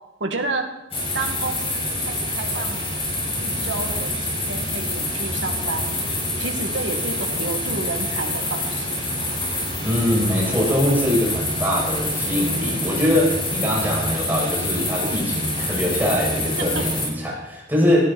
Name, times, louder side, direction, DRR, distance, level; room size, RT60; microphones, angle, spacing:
voice 1, 0.2-0.7 1.1-2.9 3.4-5.9 6.4-9.1 16.6-16.8, right 3 dB, 80° right, 3 dB, 2.2 m, -30 dB
sound 1, 0.9-17.1, left 1 dB, 30° left, 7.2 m, -26 dB
voice 2, 9.8-18.1, left 1 dB, 10° right, -4 dB, 6.9 m, -22 dB
18.0 x 14.5 x 4.4 m, 1.0 s
head